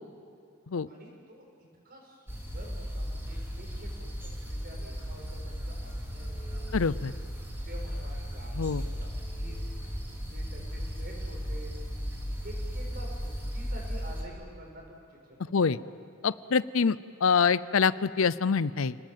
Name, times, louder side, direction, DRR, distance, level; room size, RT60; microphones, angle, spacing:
voice 1, 0.9-1.4 1.8-6.7 7.3-9.5 10.3-11.7 12.4-15.7, right 1 dB, 45° right, 0 dB, 6.6 m, -49 dB
sound 1, 2.3-14.2, equal, 10° right, 3.6 m, -36 dB
voice 2, 6.7-7.1 8.5-8.8 15.5-15.8 16.2-19.0, left 5 dB, 70° left, 17 dB, 0.6 m, -25 dB
30.0 x 19.5 x 7.5 m, 2.4 s
head